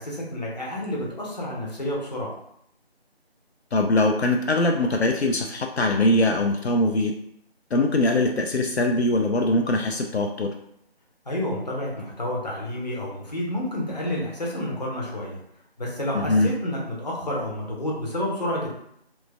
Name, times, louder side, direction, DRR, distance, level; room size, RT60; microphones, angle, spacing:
voice 1, 0.0-2.3 11.3-15.4 15.8-18.7, left 1 dB, 40° left, -3 dB, 0.8 m, -29 dB
voice 2, 3.7-7.1 7.7-10.5 16.1-16.5, left 2 dB, 80° left, 3 dB, 0.5 m, -22 dB
3.1 x 2.1 x 3.2 m, 0.72 s
figure-of-eight pair, 160°, 32 cm